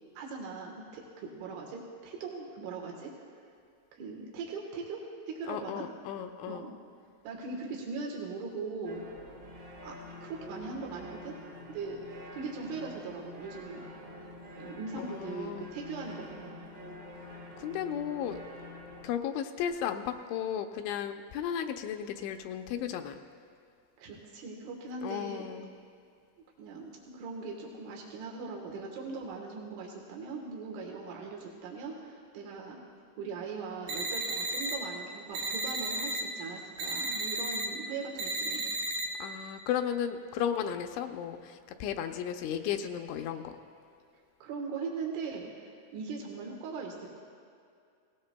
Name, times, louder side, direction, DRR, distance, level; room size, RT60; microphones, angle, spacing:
voice 1, 0.2-3.1 3.9-5.8 6.5-6.7 7.3-9.0 9.8-9.9 10.2-11.4 11.7-13.8 14.6-16.6 24.0-25.5 26.6-32.8 33.2-38.6 44.1-47.2, right 4 dB, 90° right, -1 dB, 3.8 m, -40 dB
voice 2, 5.5-6.7 15.0-15.7 17.6-18.4 19.0-23.2 25.0-25.7 39.2-43.6, left 9 dB, 85° left, 6 dB, 2.8 m, -34 dB
sound 1, 8.8-19.1, left 1 dB, 50° right, 1.1 m, -47 dB
sound 2, 33.9-34.7 35.3-36.2 36.8-37.6 38.2-39.0, right 2 dB, 75° right, 2.0 m, -33 dB
19.0 x 18.0 x 2.2 m, 2.3 s
omnidirectional pair, 5.3 m